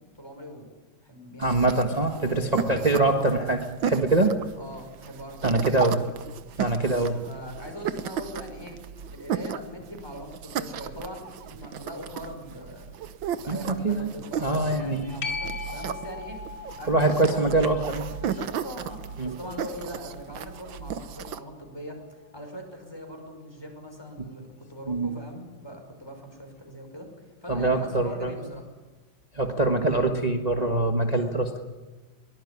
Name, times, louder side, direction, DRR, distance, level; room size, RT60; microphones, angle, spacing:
voice 1, 0.2-0.7 1.0-1.7 1.9-2.8 4.6-5.9 6.8-8.8 9.1-12.9 13.4-16.4 16.8-17.6 18.1-22.0 22.3-27.1 27.4-28.6, equal, 10° left, 3 dB, 5.5 m, -41 dB
voice 2, 1.4-4.3 5.4-6.0 6.6-7.1 13.5-14.1 14.4-15.1 16.9-18.0 19.2-19.3 24.9-25.1 27.5-28.3 29.3-31.5, right 2 dB, 20° right, 4 dB, 1.4 m, -24 dB
sound 1, 1.4-21.4, right 8 dB, 80° right, 1.7 m, -35 dB
sound 2, 15.2-22.4 27.9-28.0, left 4 dB, 65° left, 2.5 m, -41 dB
22.5 x 18.5 x 9.8 m, 1.3 s
omnidirectional pair, 2.1 m